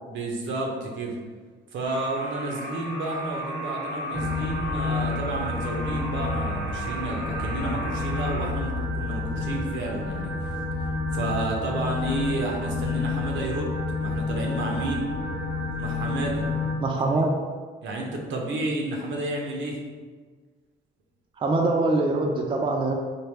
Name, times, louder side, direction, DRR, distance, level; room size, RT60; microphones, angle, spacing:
voice 1, 0.1-1.2 1.7-10.5 11.1-15.1 15.8-16.4 17.0-17.1 17.8-19.8, right 2 dB, 75° right, 0 dB, 0.7 m, -31 dB
sound 1, 1.8-8.5, right 1 dB, 35° left, 1.0 m, -35 dB
sound 2, 4.1-16.7, left 3 dB, 70° left, 1.0 m, -29 dB
voice 2, 16.8-17.3 21.4-22.9, right 2 dB, 25° right, 0 dB, 0.4 m, -23 dB
3.4 x 2.1 x 3.2 m, 1.5 s
cardioid pair, 90°, 20 cm